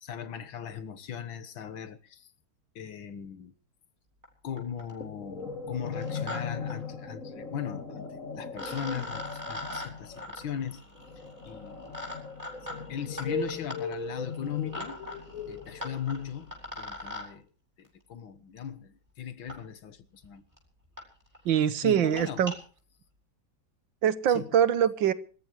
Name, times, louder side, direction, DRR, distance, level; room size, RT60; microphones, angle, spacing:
voice 1, 0.0-2.3 2.8-3.5 4.4-10.8 11.2-12.0 12.9-15.0 15.5-17.5 17.8-20.4 21.8-22.5 24.3-24.5, left 8 dB, 80° left, 2.1 m, -38 dB
sound 1, 4.2-4.3 4.6-5.0 5.9-6.4 6.7-6.8 8.0-8.1 8.5-17.3 18.6-18.7 19.5-19.6 20.2-20.3 20.6-20.7 21.0-21.1 21.3-21.5 22.0-22.6, left 1 dB, 10° right, 7.4 m, -42 dB
sound 2, 5.0-16.3, left 4 dB, 40° left, 3.1 m, -38 dB
voice 2, 21.5-22.5 24.0-25.1, right 9 dB, 75° right, 1.7 m, -24 dB
26.5 x 14.0 x 3.1 m
omnidirectional pair, 2.1 m